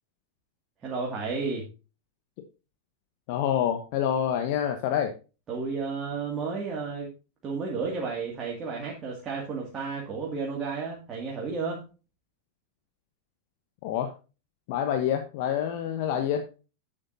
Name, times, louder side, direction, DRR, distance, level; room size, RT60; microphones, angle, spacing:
voice 1, 0.8-1.7 5.5-7.1 7.4-11.8, right 4 dB, 25° right, -3 dB, 2.2 m, -32 dB
voice 2, 3.3-5.1 13.8-14.1 14.7-16.4, left 9 dB, 45° left, 6 dB, 1.0 m, -27 dB
10.5 x 7.6 x 2.7 m, 0.32 s
figure-of-eight pair, 90°, 0 cm